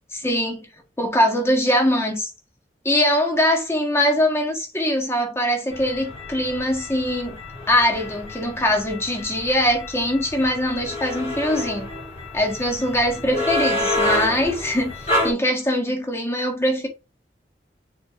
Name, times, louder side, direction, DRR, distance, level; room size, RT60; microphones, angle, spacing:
voice 1, 0.1-0.6 1.0-2.3 2.8-7.4 7.7-11.9 12.3-15.0 15.2-16.9, equal, 15° left, 1.6 m, -22 dB
sound 1, 5.7-15.3, left 1 dB, 35° left, 3.0 m, -28 dB
6.7 x 4.3 x 3.7 m
head